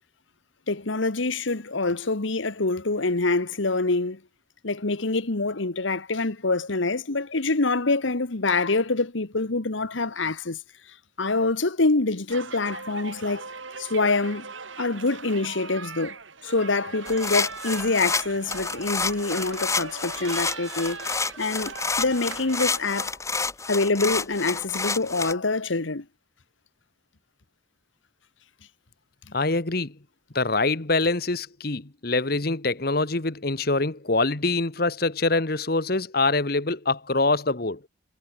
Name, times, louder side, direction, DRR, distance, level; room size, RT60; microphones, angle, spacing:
voice 1, 0.7-4.2 4.6-10.6 11.2-13.5 13.8-14.5 14.8-23.2 23.7-26.0, left 3 dB, 75° left, 1.4 m, -25 dB
sound 1, 12.3-23.0, right 5 dB, 80° right, 4.6 m, -40 dB
sound 2, 17.1-25.3, left 4 dB, 15° left, 1.9 m, -29 dB
voice 2, 29.3-30.0 30.3-37.8, left 3 dB, 50° left, 1.3 m, -24 dB
head